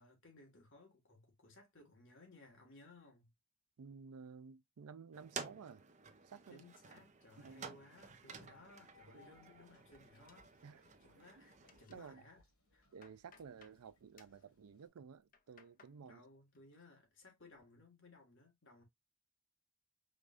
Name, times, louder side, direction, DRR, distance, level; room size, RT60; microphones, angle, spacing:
voice 1, 0.0-3.3 6.5-10.5 11.0-12.4 12.7-12.8 16.0-18.8, left 2 dB, 55° left, 1.6 m, -61 dB
voice 2, 3.8-5.8 6.2-6.6 7.4-7.7 9.1-9.3 10.6-10.8 11.4-11.5 11.9-12.2 12.9-16.2, right 6 dB, 80° right, 0.4 m, -54 dB
sound 1, 5.1-11.9, right 5 dB, 30° right, 0.5 m, -52 dB
sound 2, 8.4-14.9, left 3 dB, 80° left, 2.6 m, -70 dB
sound 3, 10.3-11.1 11.4-12.1 12.6-13.8 14.2-14.4 15.1-16.0 16.3-16.8 17.2-17.7, left 6 dB, 40° left, 0.5 m, -67 dB
4.9 x 3.2 x 2.4 m
head